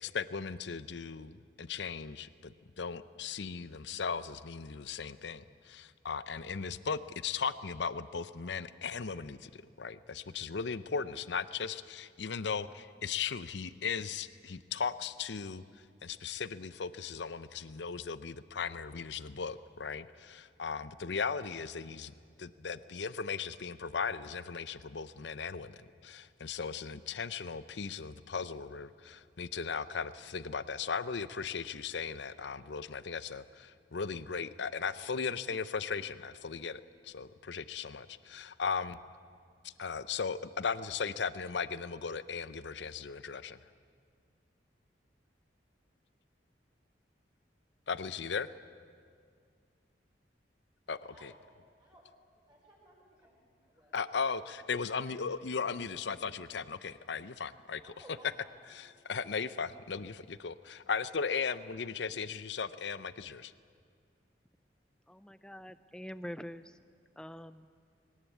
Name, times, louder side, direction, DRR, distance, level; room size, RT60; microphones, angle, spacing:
voice 1, 0.0-15.6 16.0-22.1 22.4-25.8 26.0-39.0 39.6-43.6 47.9-48.5 50.9-51.3 53.9-57.9 58.7-63.5, left 5 dB, 70° left, 15 dB, 0.6 m, -37 dB
voice 2, 50.9-51.3 51.8-52.0 52.3-54.0 57.8-58.8 59.0-59.3, right 1 dB, 25° right, -3 dB, 4.8 m, -59 dB
voice 3, 65.1-66.8 67.2-67.7, equal, 5° left, 13 dB, 0.5 m, -45 dB
21.0 x 18.5 x 8.5 m, 2.1 s
head